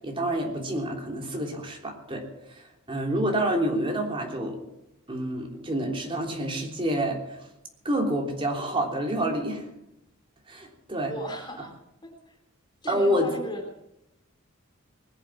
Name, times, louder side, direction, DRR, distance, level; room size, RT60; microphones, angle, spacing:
voice 1, 0.0-2.3 2.9-4.6 5.1-7.5 7.8-9.6 10.5-11.1 11.6-11.7 12.9-13.3, right 1 dB, 25° right, 1 dB, 3.3 m, -28 dB
voice 2, 11.0-11.7 12.0-12.3 12.8-13.6, equal, 20° left, 1 dB, 3.1 m, -36 dB
20.5 x 8.2 x 7.5 m, 0.86 s
head